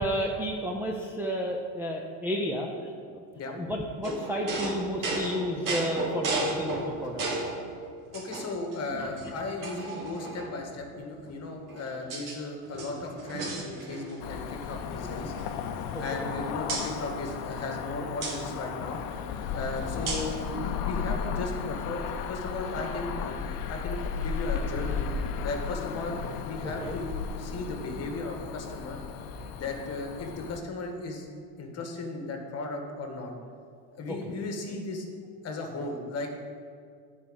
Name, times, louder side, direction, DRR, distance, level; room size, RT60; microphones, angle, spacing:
voice 1, 0.0-2.9 3.5-7.5 8.9-9.1 16.1-16.3 26.8-26.9 29.3-29.4 34.1-34.3, equal, 5° right, -1 dB, 0.6 m, -32 dB
sound 1, 4.0-7.6 8.1-8.8 9.2-9.3 9.6-10.7 11.4-12.4 12.7-14.2 14.5-14.7 15.0-16.3 16.7-16.9 18.2-18.4 20.1-20.4, right 2 dB, 45° right, 2.1 m, -34 dB
voice 2, 8.1-15.3 16.0-19.0 19.5-25.1 25.4-27.1 27.4-29.0 29.5-31.3 31.6-33.3 33.9-35.1 35.4-36.3, left 2 dB, 35° left, 3 dB, 1.6 m, -36 dB
Cricket / Motor vehicle (road), 14.2-30.6, left 6 dB, 50° left, 0.8 m, -34 dB
9.9 x 4.9 x 7.9 m, 2.3 s
supercardioid pair, 135°, 46 cm